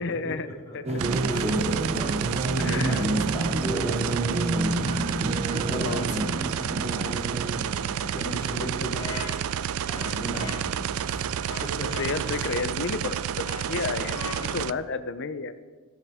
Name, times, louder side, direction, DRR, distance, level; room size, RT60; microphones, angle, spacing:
voice 1, 0.0-0.9 2.6-3.1 5.7-6.1 8.5-9.2 12.0-15.5, left 4 dB, 55° left, 11 dB, 0.7 m, -32 dB
voice 2, 0.7-5.1 5.4-6.4 6.9-7.4 8.1-9.4 9.9-10.7 11.0-11.8 12.4-12.5, right 1 dB, 15° left, -3 dB, 2.5 m, -36 dB
sound 1, 0.8-8.9, right 1 dB, 30° right, 0.7 m, -29 dB
sound 2, 1.0-14.7, right 8 dB, 70° right, 0.4 m, -30 dB
sound 3, 8.9-10.8 11.5-12.3 13.4-14.8, left 3 dB, 75° left, 1.4 m, -41 dB
14.0 x 13.5 x 3.6 m, 1.4 s
head